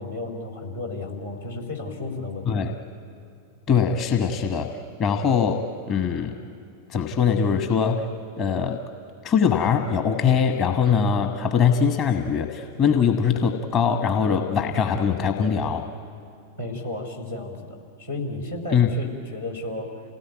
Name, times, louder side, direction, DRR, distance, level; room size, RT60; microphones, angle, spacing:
voice 1, 0.0-2.7 16.6-20.0, left 2 dB, 85° left, -1 dB, 4.1 m, -33 dB
voice 2, 3.7-4.7 5.0-6.4 6.9-8.1 8.4-8.8 9.2-15.9 18.7-18.9, left 7 dB, 35° left, 6 dB, 1.3 m, -22 dB
28.5 x 17.5 x 9.2 m, 2.5 s
figure-of-eight pair, 90°, 0 cm